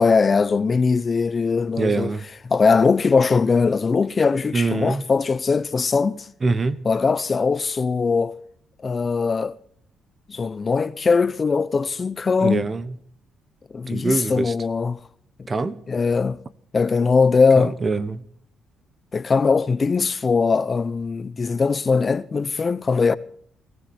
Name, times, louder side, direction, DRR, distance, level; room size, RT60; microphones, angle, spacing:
voice 1, 0.0-2.1 2.5-6.3 6.8-8.3 8.8-9.6 10.3-12.7 13.7-15.0 15.4-15.5 15.9-16.4 16.7-17.7 19.1-23.2, left 5 dB, 35° left, 0.9 m, -20 dB
voice 2, 1.8-2.2 4.5-5.0 6.4-6.8 12.4-12.9 13.9-14.5 15.5-15.8 17.6-18.2, right 3 dB, 30° right, 1.2 m, -24 dB
18.0 x 16.5 x 4.4 m
cardioid pair, 90°, 0 cm